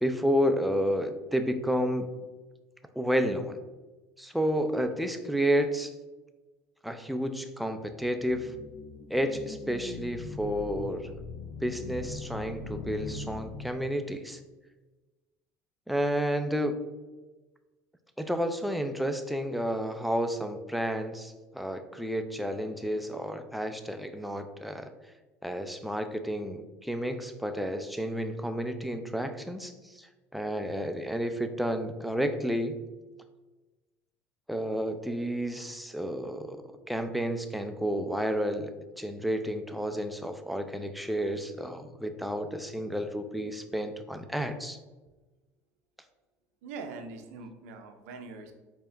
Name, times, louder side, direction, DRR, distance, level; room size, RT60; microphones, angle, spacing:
voice 1, 0.0-2.1 3.0-3.6 4.2-5.9 6.8-8.5 9.1-11.1 11.6-14.4 15.9-16.8 18.2-24.9 25.4-32.8 34.5-36.6 36.9-44.8, equal, ahead, 7 dB, 0.4 m, -31 dB
sound 1, 7.9-14.2, left 4 dB, 60° left, 0.4 m, -41 dB
voice 2, 46.6-48.5, right 4 dB, 80° right, 5 dB, 0.6 m, -42 dB
4.5 x 2.9 x 3.3 m, 1.2 s
hypercardioid pair, 75°, 8 cm